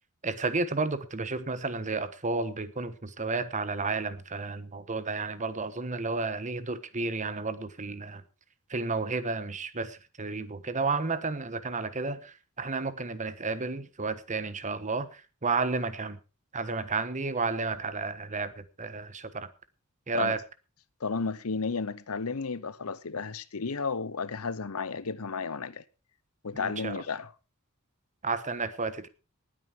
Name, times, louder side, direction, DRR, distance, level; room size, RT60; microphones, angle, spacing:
voice 1, 0.2-8.2 8.7-16.2 16.5-19.5 20.1-20.4 26.6-27.0 28.2-29.1, right 3 dB, 35° right, 1.2 m, -32 dB
voice 2, 21.0-25.8 26.4-27.3, left 4 dB, 70° left, 0.8 m, -33 dB
19.0 x 9.2 x 4.5 m
head